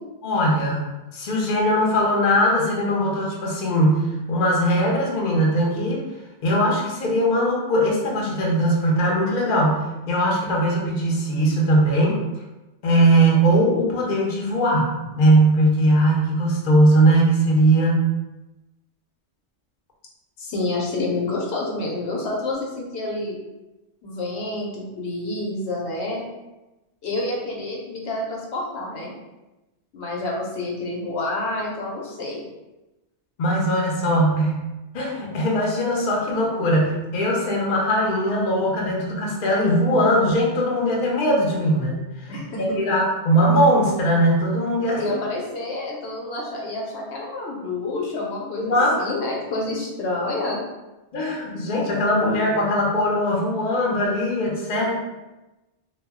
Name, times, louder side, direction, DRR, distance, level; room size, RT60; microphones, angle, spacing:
voice 1, 0.2-0.9 1.1-6.0 6.4-12.2 12.8-18.0 33.4-34.6 34.9-45.2 48.6-49.2 51.1-55.0, right 1 dB, 50° left, -2 dB, 0.6 m, -20 dB
voice 2, 20.4-23.4 24.0-26.2 27.0-29.1 29.9-32.5 42.3-42.8 45.0-50.6, left 2 dB, 75° left, -2 dB, 0.9 m, -28 dB
2.3 x 2.1 x 3.5 m, 1.0 s
omnidirectional pair, 1.2 m